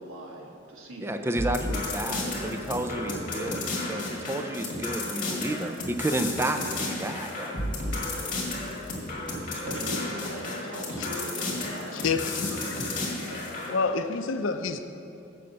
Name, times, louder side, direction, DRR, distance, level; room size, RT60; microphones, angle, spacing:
voice 1, 0.0-1.5 1.9-3.6 9.5-13.4, right 1 dB, 90° right, 0 dB, 1.4 m, -41 dB
voice 2, 1.0-3.6 3.9-7.6, right 1 dB, 10° right, 7 dB, 0.3 m, -31 dB
sound 1, 1.3-13.7, left 2 dB, 40° left, 1.9 m, -33 dB
voice 3, 11.9-12.8 13.7-14.9, left 4 dB, 65° left, 9 dB, 0.5 m, -29 dB
6.8 x 6.3 x 7.5 m, 2.7 s
head